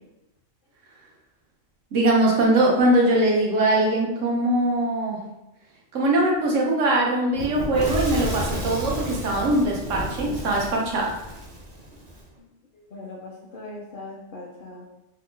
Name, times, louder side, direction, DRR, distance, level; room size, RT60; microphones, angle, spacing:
voice 1, 1.9-5.2 5.9-11.2, right 1 dB, 80° right, -1 dB, 1.1 m, -21 dB
Fire / Explosion, 7.3-12.2, right 1 dB, 40° right, 0.5 m, -31 dB
voice 2, 12.9-14.9, left 2 dB, 60° left, -3 dB, 0.6 m, -39 dB
3.0 x 2.0 x 3.1 m, 0.92 s
omnidirectional pair, 1.3 m